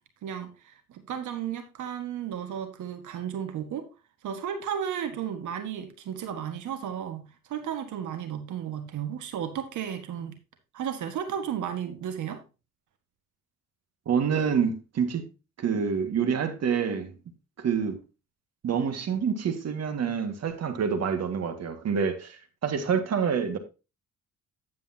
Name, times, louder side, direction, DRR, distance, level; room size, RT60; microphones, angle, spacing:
voice 1, 0.2-3.9 4.2-10.3 10.7-12.4, right 9 dB, 75° right, 1.7 m, -34 dB
voice 2, 14.1-15.3 15.6-17.2 17.6-18.0 18.6-23.6, right 6 dB, 55° right, 1.9 m, -27 dB
9.9 x 8.4 x 2.8 m
cardioid pair, 90°, 30 cm